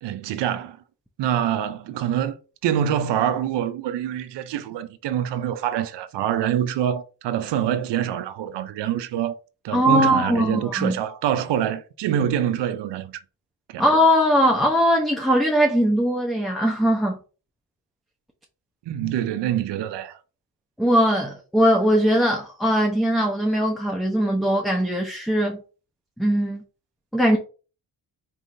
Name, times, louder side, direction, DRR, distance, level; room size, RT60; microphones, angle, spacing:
voice 1, 0.0-0.8 1.2-2.4 2.6-9.3 9.6-13.1 13.7-13.8 18.9-20.2, right 10 dB, 70° right, 0.6 m, -25 dB
voice 2, 9.7-11.0 13.8-17.2 20.8-25.6 26.2-26.6 27.1-27.4, equal, ahead, 0.7 m, -20 dB
4.3 x 3.5 x 2.6 m
supercardioid pair, 55°, 43 cm